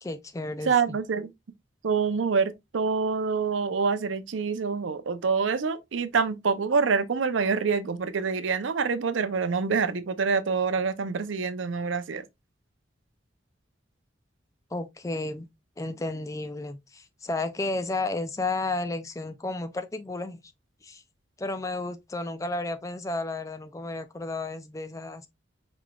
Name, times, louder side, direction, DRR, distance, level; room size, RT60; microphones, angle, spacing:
voice 1, 0.0-1.0 14.7-15.5 15.8-20.4 20.8-21.0 21.4-25.3, left 2 dB, 15° left, 0.3 m, -32 dB
voice 2, 0.7-1.3 1.8-12.2, right 5 dB, 85° right, 0.5 m, -26 dB
4.8 x 3.8 x 2.3 m
head